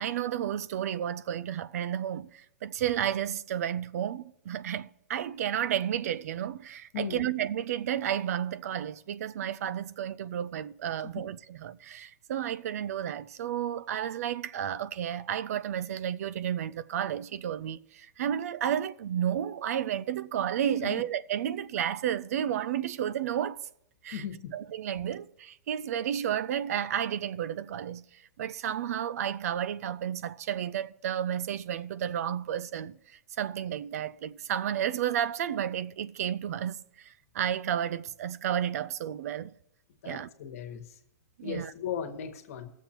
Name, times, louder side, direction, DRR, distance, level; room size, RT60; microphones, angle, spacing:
voice 1, 0.0-23.6 24.0-24.2 24.5-33.0 33.4-39.5 40.0-40.3 41.4-41.7, right 10 dB, 65° right, 0.3 m, -32 dB
voice 2, 6.9-7.3 11.1-11.3 20.8-21.0 24.1-24.5 40.0-40.9 41.4-42.7, left 8 dB, 60° left, 1.3 m, -37 dB
21.0 x 7.2 x 2.9 m
hypercardioid pair, 155°, 9 cm